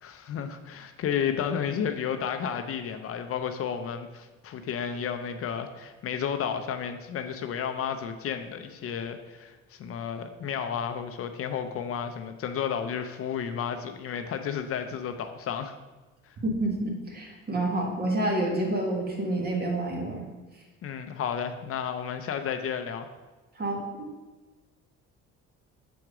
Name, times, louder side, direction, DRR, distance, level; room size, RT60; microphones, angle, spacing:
voice 1, 0.0-15.8 16.2-16.4 20.8-23.1, left 7 dB, 50° left, 8 dB, 0.6 m, -32 dB
voice 2, 16.4-20.3 23.6-24.1, right 1 dB, 35° right, 1 dB, 1.6 m, -28 dB
7.1 x 4.6 x 4.9 m, 1.2 s
cardioid pair, 120°, 29 cm